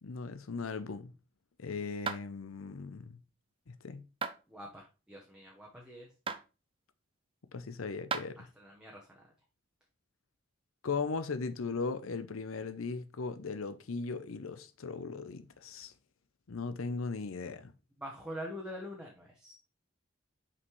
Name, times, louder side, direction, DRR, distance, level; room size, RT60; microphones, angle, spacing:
voice 1, 0.0-1.1 1.6-3.2 3.7-4.0 7.5-8.5 10.8-15.9 16.5-17.7, left 4 dB, 85° left, 0.6 m, -38 dB
sound 1, 2.1-2.3 4.2-4.4 6.3-6.4 8.1-8.3, right 5 dB, 25° right, 0.5 m, -34 dB
voice 2, 4.5-6.1 8.6-9.2 18.0-19.5, equal, 5° right, 1.0 m, -45 dB
5.7 x 5.2 x 3.1 m
head